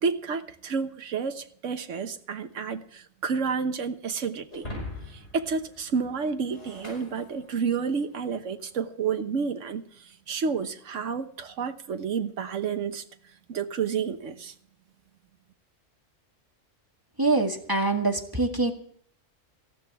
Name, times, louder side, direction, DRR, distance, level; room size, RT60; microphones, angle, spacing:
voice 1, 0.0-4.6 5.1-13.0 13.5-14.5, right 5 dB, 75° right, 8 dB, 1.5 m, -30 dB
Shatter, 4.5-8.0, left 1 dB, 60° left, 5.7 m, -42 dB
voice 2, 17.2-18.7, right 2 dB, 15° right, 3 dB, 1.8 m, -24 dB
18.5 x 15.5 x 3.6 m, 0.62 s
omnidirectional pair, 1.3 m